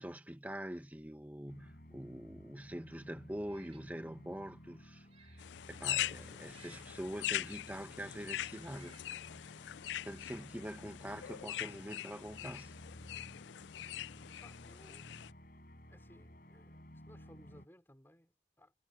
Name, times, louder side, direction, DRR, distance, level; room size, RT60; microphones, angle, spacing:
voice 1, 0.0-9.0 9.4-9.7 10.0-12.8, equal, 10° right, 1.3 m, -45 dB
sound 1, 1.5-17.7, equal, 50° left, 7.5 m, -55 dB
Meow, 3.4-3.9 4.3-4.4 4.9-5.5 6.5-7.0 7.8-7.9 8.5-9.1, right 7 dB, 35° right, 3.5 m, -63 dB
sound 2, 5.4-15.3, left 13 dB, 75° left, 0.3 m, -42 dB
voice 2, 14.4-15.4 15.9-18.7, equal, 10° left, 4.6 m, -62 dB
head